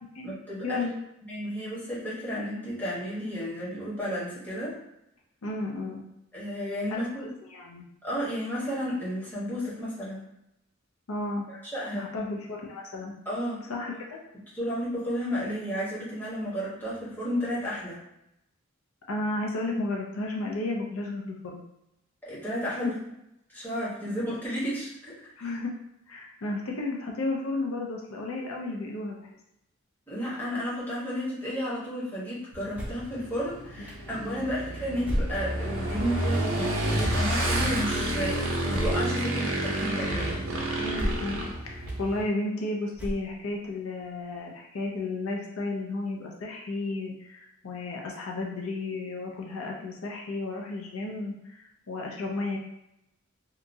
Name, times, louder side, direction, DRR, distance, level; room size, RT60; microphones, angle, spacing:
voice 1, 0.2-0.8 1.2-4.8 6.3-7.3 8.0-10.2 11.5-12.1 13.2-13.6 14.5-18.0 22.2-23.0 23.5-25.5 30.1-40.4, equal, 10° left, -9 dB, 1.0 m, -32 dB
voice 2, 5.4-6.0 7.2-7.8 11.1-11.5 11.9-13.1 13.7-14.2 19.1-21.6 25.4-25.8 26.1-29.3 33.9-34.4 40.7-52.6, left 2 dB, 85° left, -1 dB, 0.5 m, -33 dB
Motorcycle / Engine, 32.5-42.2, right 1 dB, 75° right, 0.6 m, -29 dB
sound 1, 32.7-33.1 33.9-34.0 35.0-35.7 36.3-36.5 38.7-39.1 39.8-39.9 40.9-41.4 41.9-42.0 42.9-43.5, equal, 5° right, 0.5 m, -32 dB
2.8 x 2.3 x 2.6 m, 0.84 s
head